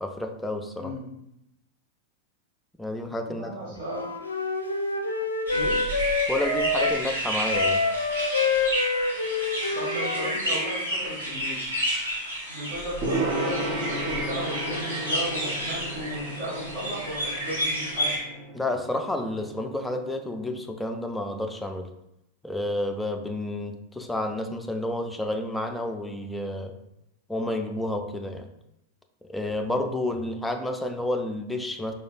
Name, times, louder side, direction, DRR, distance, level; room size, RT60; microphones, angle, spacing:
voice 1, 0.0-0.9 2.8-3.5 6.3-7.9 18.5-21.9 22.4-26.8 27.3-28.5 29.3-31.9, left 1 dB, 5° left, 5 dB, 0.3 m, -30 dB
voice 2, 0.7-1.1 3.2-4.1 5.5-5.9 9.6-11.6 12.5-18.1, right 1 dB, 55° right, -5 dB, 1.3 m, -35 dB
Wind instrument woodwind instrument, 3.8-7.0 7.5-10.8, left 3 dB, 80° left, 0.4 m, -27 dB
sound 1, 5.5-18.2, equal, 75° right, 1.3 m, -31 dB
Gong, 13.0-20.5, right 1 dB, 30° right, 0.7 m, -34 dB
4.5 x 2.3 x 2.3 m, 0.83 s
figure-of-eight pair, 90°, 0 cm